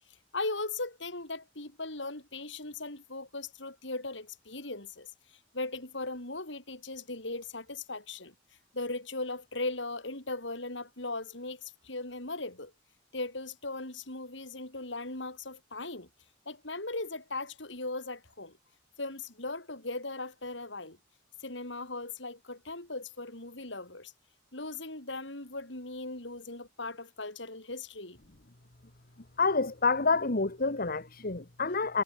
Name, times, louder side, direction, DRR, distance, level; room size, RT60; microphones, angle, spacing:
voice 1, 0.3-8.3 8.7-12.7 13.1-16.1 16.5-18.6 19.0-21.0 21.4-24.1 24.5-28.2, left 2 dB, 70° left, 6.2 m, -38 dB
voice 2, 29.4-32.0, left 4 dB, 50° left, 1.9 m, -28 dB
head